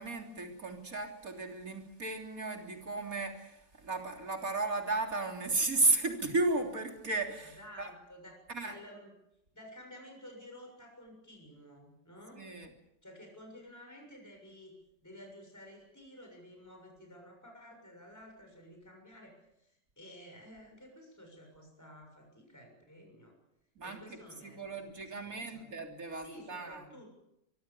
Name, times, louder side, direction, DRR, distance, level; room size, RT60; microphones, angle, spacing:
voice 1, 0.0-7.9 8.5-8.8 12.3-12.7 23.8-27.1, right 3 dB, 50° right, 3 dB, 3.9 m, -34 dB
voice 2, 7.6-8.4 8.6-9.1 9.5-12.4 13.0-14.7 15.0-23.3 23.8-24.9 25.2-25.7 26.2-27.1, equal, 10° left, 2 dB, 6.8 m, -52 dB
24.5 x 23.5 x 7.1 m, 0.84 s
omnidirectional pair, 1.9 m